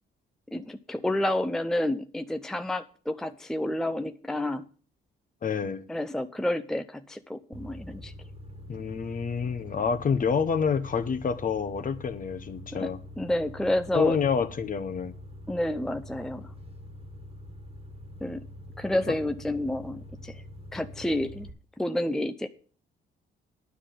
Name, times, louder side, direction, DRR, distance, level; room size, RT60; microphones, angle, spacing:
voice 1, 0.5-4.6 5.9-8.1 12.7-14.2 15.5-16.5 18.2-18.5 18.8-20.4 20.7-21.5 21.8-22.5, left 1 dB, ahead, 0.6 m, -30 dB
voice 2, 5.4-5.8 8.7-13.0 13.9-15.1 19.1-19.2, left 6 dB, 45° left, 1.1 m, -28 dB
sound 1, 7.5-21.5, left 1 dB, 30° right, 1.7 m, -45 dB
10.0 x 5.9 x 8.5 m
cardioid pair, 90°, 20 cm